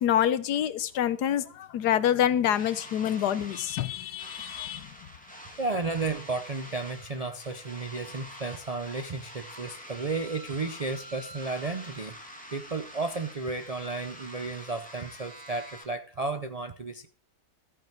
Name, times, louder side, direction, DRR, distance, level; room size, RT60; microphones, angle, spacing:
voice 1, 0.0-4.9, left 10 dB, 75° left, 15 dB, 1.4 m, -26 dB
sound 1, 2.5-15.8, equal, 5° left, 2.3 m, -46 dB
voice 2, 5.6-12.2 12.5-17.1, right 3 dB, 65° right, 9 dB, 0.3 m, -33 dB
13.5 x 9.2 x 4.6 m, 0.42 s
omnidirectional pair, 1.8 m